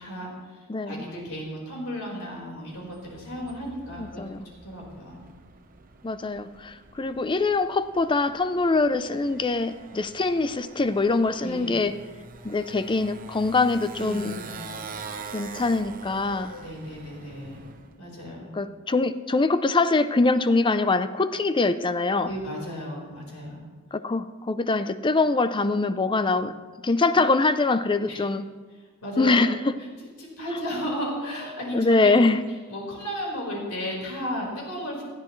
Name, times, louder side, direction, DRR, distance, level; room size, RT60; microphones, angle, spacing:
voice 1, 0.0-4.2 4.6-5.2 11.4-11.7 13.9-14.6 16.5-17.6 18.0-18.5 22.2-23.6 28.0-28.2 29.0-29.4 29.8-29.9 30.2-32.2 32.7-35.0, equal, 70° left, -2 dB, 4.6 m, -34 dB
voice 2, 0.7-1.0 4.0-4.4 6.0-11.9 12.4-14.4 15.3-16.6 18.5-22.3 23.9-26.5 26.8-28.5 29.2-29.7 31.7-32.4, left 3 dB, 20° left, 12 dB, 0.5 m, -23 dB
Motorcycle, 2.6-18.0, right 4 dB, 40° right, 1.0 m, -45 dB
19.5 x 13.5 x 3.2 m, 1.4 s
head